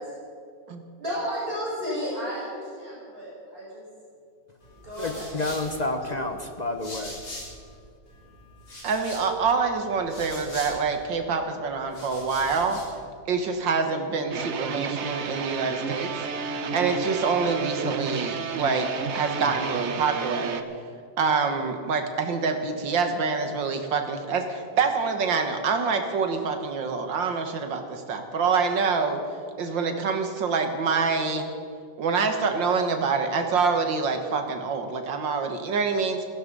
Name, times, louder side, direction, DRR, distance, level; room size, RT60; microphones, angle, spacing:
voice 1, 1.0-3.9 4.8-5.8, equal, 30° right, -7 dB, 5.3 m, -33 dB
sound 1, 4.6-7.7 8.1-11.2 11.7-13.0, left 1 dB, 60° left, 4.7 m, -43 dB
voice 2, 5.0-7.1, left 2 dB, 35° left, 6 dB, 0.7 m, -30 dB
voice 3, 8.8-12.8 13.3-16.1 16.7-20.6 21.2-29.2 29.6-31.5 32.0-36.3, right 5 dB, 85° right, 6 dB, 2.2 m, -26 dB
sound 2, 14.3-20.6, right 5 dB, 50° right, 1.0 m, -31 dB
16.5 x 15.0 x 5.4 m, 2.3 s
omnidirectional pair, 2.0 m